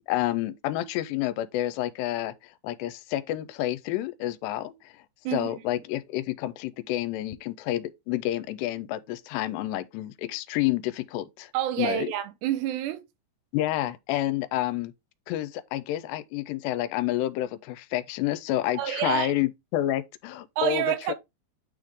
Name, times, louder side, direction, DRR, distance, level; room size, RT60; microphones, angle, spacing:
voice 1, 0.1-2.3 2.6-4.9 5.3-11.5 11.8-12.1 13.5-14.9 15.3-21.1, left 14 dB, 85° left, 2.7 m, -29 dB
voice 2, 5.2-5.6 11.5-13.0 18.7-19.3 20.6-21.1, right 12 dB, 80° right, 3.0 m, -28 dB
9.4 x 3.6 x 3.5 m
omnidirectional pair, 4.9 m